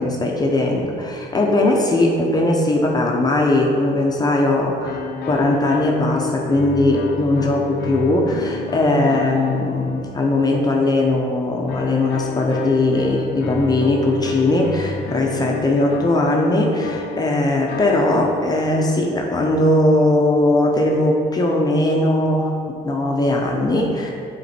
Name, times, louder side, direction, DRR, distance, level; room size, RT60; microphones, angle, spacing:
voice 1, 0.0-22.6 22.8-24.1, left 2 dB, 25° left, 0 dB, 0.8 m, -19 dB
sound 1, 4.8-10.6 11.7-19.1, left 4 dB, 80° left, 0.7 m, -31 dB
7.1 x 4.4 x 4.3 m, 2.4 s
cardioid pair, 110°, 17 cm